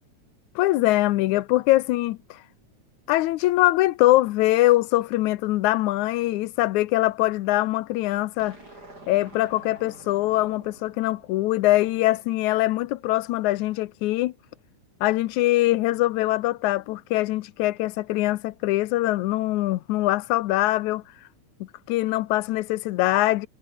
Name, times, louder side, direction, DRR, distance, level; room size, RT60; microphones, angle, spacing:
voice 1, 0.6-2.4 3.1-8.6 9.1-14.3 15.0-21.0 21.9-23.5, left 17 dB, 80° left, 2.1 m, -23 dB
sound 1, 8.4-12.8, right 2 dB, 30° right, 7.7 m, -49 dB
omnidirectional pair, 3.5 m